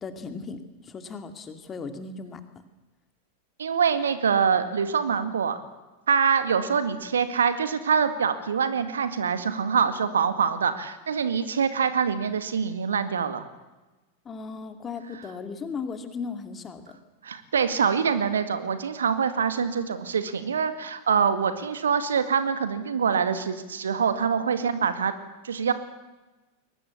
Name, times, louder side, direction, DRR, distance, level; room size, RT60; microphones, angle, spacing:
voice 1, 0.0-2.4 14.2-17.0, left 5 dB, 20° left, 8 dB, 2.4 m, -36 dB
voice 2, 3.6-5.6 6.1-13.5 17.2-25.1 25.4-25.7, right 6 dB, 70° right, 10 dB, 2.0 m, -25 dB
22.5 x 19.0 x 8.4 m, 1.1 s
figure-of-eight pair, 90°, 0 cm